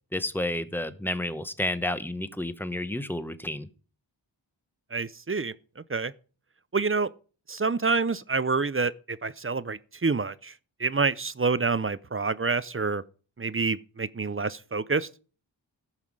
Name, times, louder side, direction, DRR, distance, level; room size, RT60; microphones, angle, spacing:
voice 1, 0.1-3.7, left 1 dB, 5° left, 0.9 m, -31 dB
voice 2, 4.9-6.1 6.7-7.1 7.5-10.5 10.8-13.0 13.4-15.1, right 4 dB, 30° right, 0.6 m, -27 dB
15.0 x 5.7 x 4.8 m
wide cardioid pair, 70°, 46 cm